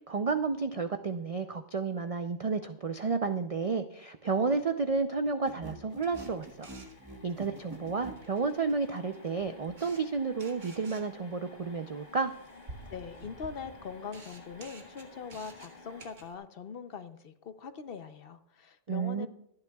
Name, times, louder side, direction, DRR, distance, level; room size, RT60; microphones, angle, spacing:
voice 1, 0.1-6.7 7.2-12.3 18.9-19.3, right 4 dB, 55° right, 8 dB, 0.4 m, -31 dB
sound 1, 4.8-4.9 5.1-16.1, left 3 dB, 35° left, 1.6 m, -54 dB
sound 2, 5.4-8.2, right 1 dB, 20° right, 1.1 m, -45 dB
Camera, 6.0-16.3, right 2 dB, 80° right, 2.1 m, -53 dB
voice 2, 12.9-19.3, left 6 dB, 55° left, 10 dB, 0.8 m, -42 dB
25.5 x 9.7 x 2.3 m, 0.74 s
omnidirectional pair, 1.3 m